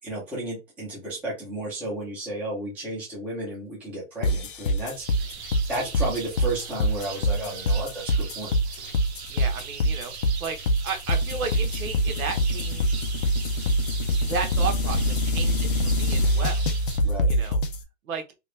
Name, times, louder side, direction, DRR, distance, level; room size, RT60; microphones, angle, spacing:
voice 1, 0.0-5.4 5.7-9.0 17.0-17.3, right 1 dB, 5° right, 0.7 m, -33 dB
sound 1, 4.2-17.8, equal, 40° left, 0.4 m, -24 dB
sound 2, 4.9-17.0, right 5 dB, 50° right, 0.8 m, -40 dB
voice 2, 9.3-10.1 10.4-10.6 10.8-13.0 14.2-16.7 17.3-17.6 18.0-18.2, right 5 dB, 80° right, 1.1 m, -33 dB
2.9 x 2.5 x 3.2 m
hypercardioid pair, 170°, 42 cm